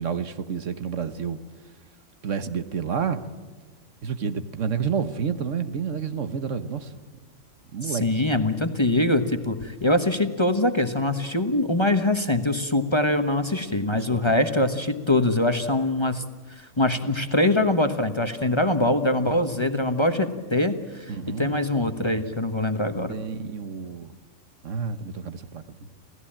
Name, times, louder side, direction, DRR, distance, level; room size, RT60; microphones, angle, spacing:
voice 1, 0.0-1.4 2.2-3.2 4.0-6.9 7.7-8.0 13.9-14.3 21.1-21.5 23.1-24.1 24.6-25.6, right 6 dB, 70° right, 11 dB, 1.4 m, -29 dB
voice 2, 7.8-16.2 16.6-23.2, left 1 dB, 25° left, 8 dB, 1.1 m, -23 dB
28.0 x 16.5 x 8.8 m, 1.4 s
omnidirectional pair, 1.3 m